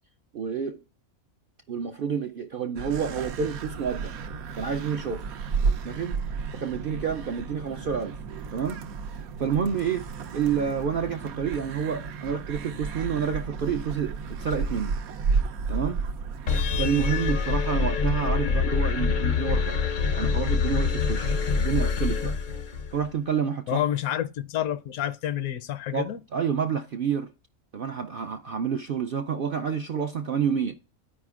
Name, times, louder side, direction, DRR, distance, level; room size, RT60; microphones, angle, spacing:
voice 1, 0.3-0.8 1.7-4.2 4.6-5.2 5.8-6.2 6.5-8.2 8.5-8.8 9.4-10.1 10.3-15.0 15.7-16.0 16.8-19.8 20.1-22.3 22.9-23.8 25.9-27.3 27.7-30.7, right 7 dB, 65° right, 0.5 m, -29 dB
sound 1, 2.8-16.8, right 5 dB, 85° right, 1.1 m, -32 dB
sound 2, 16.5-23.1, left 5 dB, 55° left, 0.5 m, -25 dB
voice 2, 23.7-26.2, left 11 dB, 80° left, 1.1 m, -29 dB
13.5 x 4.9 x 2.4 m
omnidirectional pair, 1.5 m